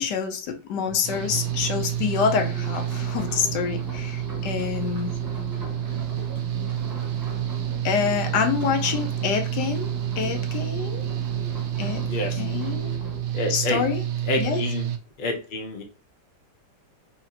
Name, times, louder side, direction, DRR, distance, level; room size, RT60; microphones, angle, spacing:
voice 1, 0.0-5.1 7.8-11.0 11.8-12.1 12.4-13.0 13.5-14.0 14.4-14.6, left 7 dB, 80° left, 1.2 m, -26 dB
Engine / Mechanical fan, 1.0-15.0, right 11 dB, 75° right, 1.1 m, -29 dB
sound 1, 1.1-13.2, left 1 dB, 15° right, 1.3 m, -39 dB
voice 2, 12.0-12.4 13.3-13.8 14.2-14.9 15.2-15.8, left 2 dB, 40° left, 0.7 m, -28 dB
4.2 x 2.9 x 2.8 m
omnidirectional pair, 1.8 m